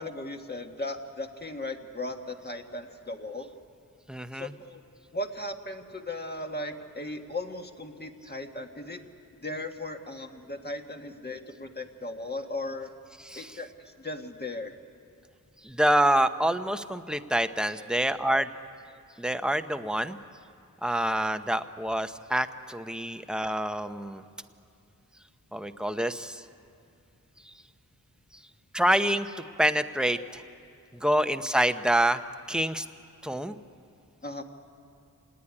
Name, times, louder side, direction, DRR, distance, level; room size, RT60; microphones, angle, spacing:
voice 1, 0.0-3.5 4.3-4.8 5.1-9.0 9.4-12.9 13.3-13.7 14.0-14.7 34.2-34.4, left 2 dB, 30° left, 4 dB, 1.7 m, -37 dB
voice 2, 4.1-4.5 13.2-13.6 15.6-18.5 19.2-20.2 20.8-24.2 25.5-26.4 28.7-30.4 31.0-32.2 32.5-32.9 33.2-33.6, right 1 dB, ahead, 9 dB, 0.8 m, -27 dB
27.0 x 18.5 x 9.8 m, 2.6 s
wide cardioid pair, 110°, 34 cm